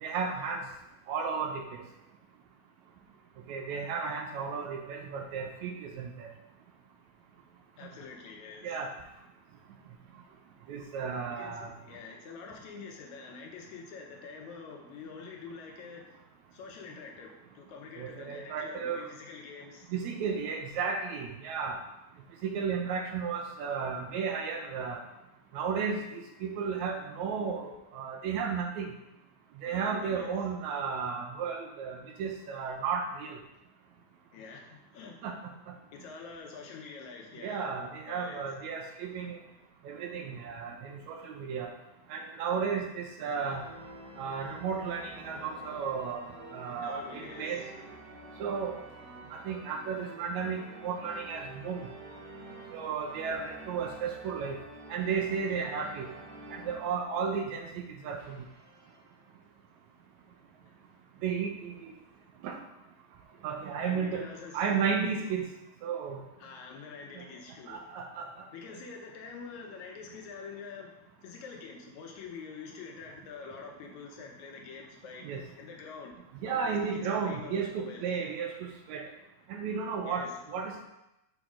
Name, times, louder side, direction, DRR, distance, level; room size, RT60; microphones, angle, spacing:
voice 1, 0.0-0.6 1.1-1.6 3.5-6.3 8.6-8.9 10.7-11.7 18.0-19.1 19.9-21.8 22.4-25.0 25.5-26.0 26.4-28.9 29.6-33.4 35.2-35.3 37.4-39.4 39.9-41.7 42.1-43.6 44.2-46.2 46.5-47.6 48.4-48.7 49.3-51.9 52.7-54.6 54.9-56.1 56.5-57.7 58.0-58.4 61.2-61.7 62.4-62.5 63.4-64.2 64.5-65.4 65.8-66.2 67.7-68.3 75.2-75.4 76.4-79.0 79.5-80.8, right 6 dB, 75° right, 3 dB, 1.9 m, -33 dB
voice 2, 7.8-8.8 11.3-16.2 16.5-19.9 29.7-30.3 34.3-35.2 35.9-37.7 38.1-38.7 46.8-47.6 55.5-55.6 63.8-64.8 66.4-67.8 68.5-70.9 71.2-75.3 75.6-76.2 76.5-78.0 80.1-80.3, left 5 dB, 75° left, 1 dB, 2.0 m, -46 dB
sound 1, 43.4-57.7 58.1-59.3 59.9-60.0 60.3-60.4 61.2-62.2, right 2 dB, 60° right, 2.2 m, -49 dB
6.2 x 5.1 x 3.7 m, 0.92 s
omnidirectional pair, 3.5 m